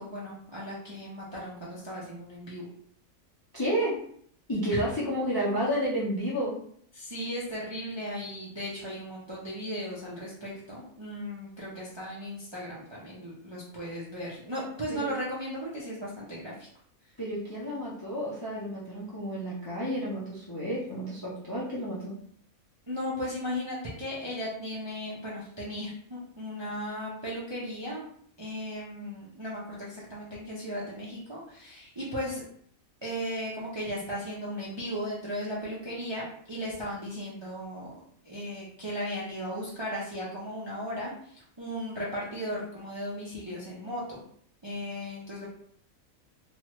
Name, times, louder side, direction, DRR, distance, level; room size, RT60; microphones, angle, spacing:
voice 1, 0.0-2.6 6.9-16.7 22.9-28.0 28.4-32.4 33.0-38.0 38.2-44.2 44.6-45.5, equal, 40° right, -6 dB, 0.4 m, -36 dB
voice 2, 3.5-4.0 4.5-6.6 14.9-15.1 17.2-22.2, equal, 30° left, -6 dB, 0.4 m, -31 dB
3.1 x 2.3 x 3.0 m, 0.63 s
omnidirectional pair, 1.5 m